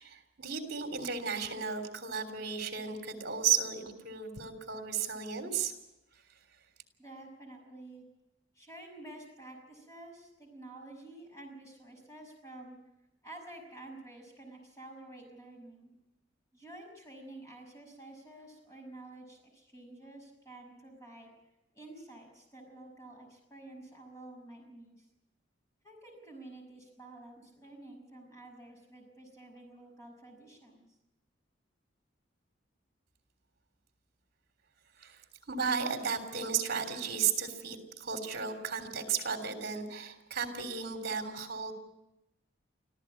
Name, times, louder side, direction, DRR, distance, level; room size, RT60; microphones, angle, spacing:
voice 1, 0.0-5.7 35.0-35.2 35.5-41.7, right 6 dB, 55° right, 5 dB, 3.3 m, -34 dB
voice 2, 7.0-8.0 8.5-12.8 13.2-15.9 16.5-21.3 21.7-25.1 25.8-30.8, right 2 dB, 15° left, 1 dB, 6.1 m, -50 dB
25.5 x 15.0 x 8.5 m, 0.94 s
head